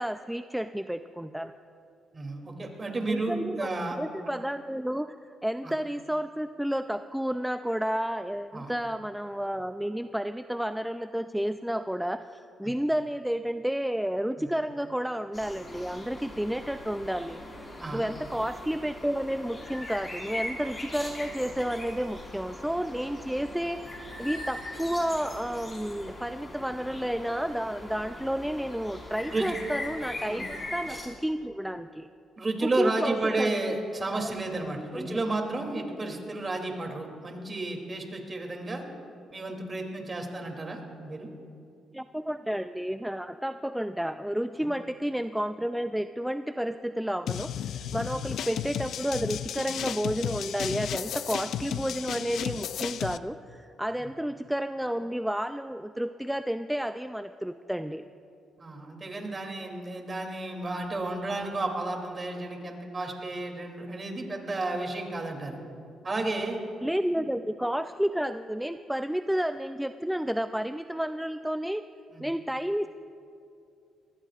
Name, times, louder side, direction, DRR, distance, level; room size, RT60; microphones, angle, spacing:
voice 1, 0.0-1.5 3.1-17.4 17.9-32.1 32.6-33.6 34.1-34.3 34.9-35.2 41.9-58.1 66.8-71.8 72.2-72.9, equal, 5° right, 9 dB, 0.4 m, -31 dB
voice 2, 2.1-4.0 5.6-5.7 8.5-8.7 14.4-14.5 17.8-18.0 29.3-29.5 30.2-30.4 32.4-38.8 39.3-41.3 44.5-44.6 48.1-48.2 54.0-54.1 58.6-65.6 66.0-66.6 67.1-67.3 72.1-72.3, right 2 dB, 30° right, 2 dB, 2.8 m, -32 dB
sound 1, 15.3-31.1, left 1 dB, 25° left, 4.7 m, -40 dB
sound 2, 47.3-53.2, left 10 dB, 70° left, 0.4 m, -33 dB
24.0 x 19.5 x 2.5 m, 2.5 s
cardioid pair, 90°, 0 cm